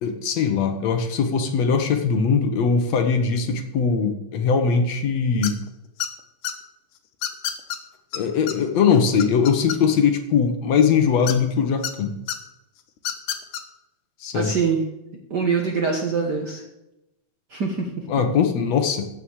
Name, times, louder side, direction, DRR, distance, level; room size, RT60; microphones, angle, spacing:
voice 1, 0.0-5.6 8.1-12.2 14.2-14.5 18.1-19.1, left 6 dB, 65° left, 6 dB, 2.2 m, -21 dB
sound 1, 5.4-5.7 6.0-6.5 7.2-7.8 8.1-8.2 8.5-8.6 8.9-10.1 11.3-11.9 12.3-12.4 13.0-13.6, left 10 dB, 90° left, 2.6 m, -28 dB
voice 2, 14.3-14.8 15.3-16.6 17.5-18.0, right 5 dB, 50° right, 1 dB, 1.3 m, -24 dB
15.0 x 6.5 x 7.2 m, 0.89 s
omnidirectional pair, 3.5 m